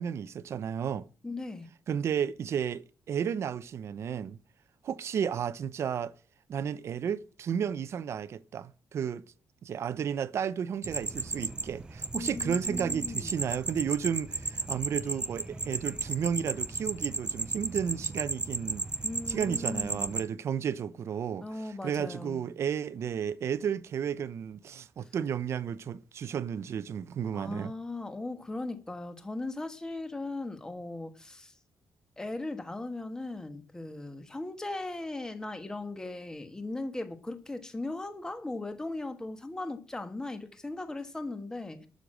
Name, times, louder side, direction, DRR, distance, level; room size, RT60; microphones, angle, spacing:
voice 1, 0.0-1.1 1.9-4.4 4.8-6.1 6.5-9.2 9.6-18.9 19.3-21.5 21.8-27.7, right 8 dB, 50° right, 0.7 m, -33 dB
voice 2, 1.2-1.7 12.1-13.3 19.0-20.1 21.4-22.4 27.3-31.5 32.2-41.9, left 2 dB, 10° left, 1.4 m, -38 dB
sound 1, 10.8-20.2, right 3 dB, 15° right, 0.6 m, -34 dB
12.0 x 6.5 x 7.6 m
wide cardioid pair, 170°, 6 cm